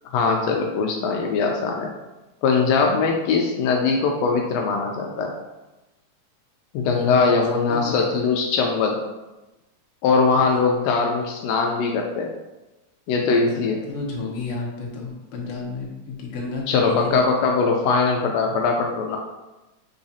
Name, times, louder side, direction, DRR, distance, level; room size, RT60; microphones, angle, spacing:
voice 1, 0.1-1.9 2.4-5.3 6.7-9.0 10.0-12.3 13.1-13.8 16.7-19.2, left 4 dB, 90° left, 1 dB, 1.4 m, -21 dB
voice 2, 6.9-7.3 7.7-8.0 10.3-10.5 13.5-17.3, left 4 dB, 70° left, -2 dB, 1.5 m, -32 dB
5.9 x 3.1 x 2.7 m, 1.0 s
omnidirectional pair, 3.5 m